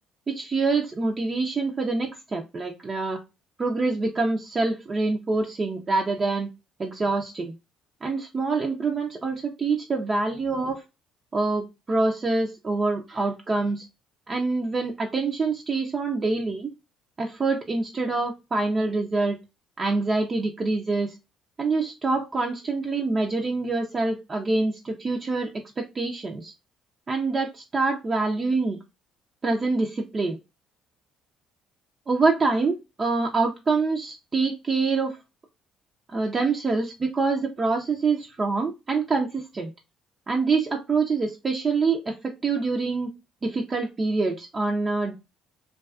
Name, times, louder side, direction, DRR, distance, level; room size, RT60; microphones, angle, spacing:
voice 1, 0.3-3.2 3.6-6.5 6.8-7.5 8.0-10.8 11.3-13.9 14.3-16.7 17.2-19.4 19.8-21.2 21.6-25.5 25.8-26.5 27.1-28.8 29.4-30.4 32.1-35.2 36.1-39.7 40.3-43.1 43.4-45.1, right 3 dB, 35° right, 1 dB, 0.5 m, -25 dB
2.3 x 2.3 x 2.3 m, 0.25 s
supercardioid pair, 75°, 0 cm